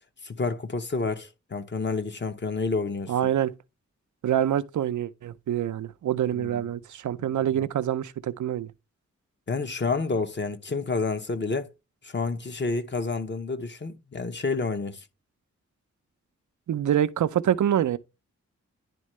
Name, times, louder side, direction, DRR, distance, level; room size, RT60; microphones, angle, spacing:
voice 1, 0.2-3.1 6.3-6.6 7.2-7.7 9.5-11.7 12.0-15.0, left 4 dB, 40° left, 0.9 m, -29 dB
voice 2, 3.1-3.5 4.2-8.7 16.7-18.0, right 10 dB, 90° right, 0.6 m, -26 dB
10.5 x 3.7 x 3.1 m
wide cardioid pair, 90°, 29 cm